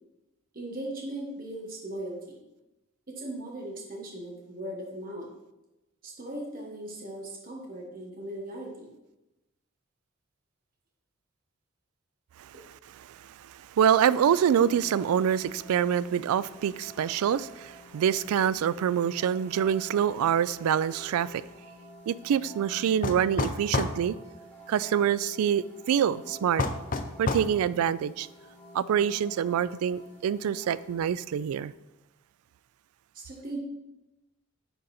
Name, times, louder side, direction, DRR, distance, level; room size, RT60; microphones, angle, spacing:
voice 1, 0.5-2.4 3.1-5.3 6.0-8.9 12.5-12.6 33.1-33.6, right 1 dB, 40° right, 1.3 m, -38 dB
voice 2, 13.1-21.4 22.1-24.2 24.7-26.7 27.2-28.3 28.7-31.7, right 8 dB, 85° right, 0.3 m, -26 dB
sound 1, 13.9-31.0, left 1 dB, 10° left, 1.3 m, -50 dB
sound 2, 23.0-24.0 26.6-27.5, left 3 dB, 40° left, 0.5 m, -28 dB
10.0 x 3.9 x 4.2 m
head